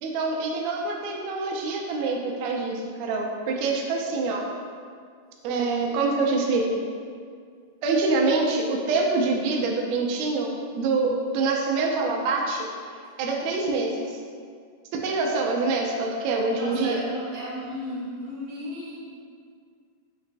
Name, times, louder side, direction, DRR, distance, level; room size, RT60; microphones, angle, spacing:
voice 1, 0.0-4.5 5.4-6.8 7.8-12.7 13.2-14.2 15.0-17.0, right 3 dB, 80° right, 0 dB, 1.6 m, -25 dB
voice 2, 16.5-19.2, equal, 65° right, -9 dB, 1.9 m, -34 dB
5.2 x 3.0 x 2.5 m, 2.1 s
omnidirectional pair, 3.6 m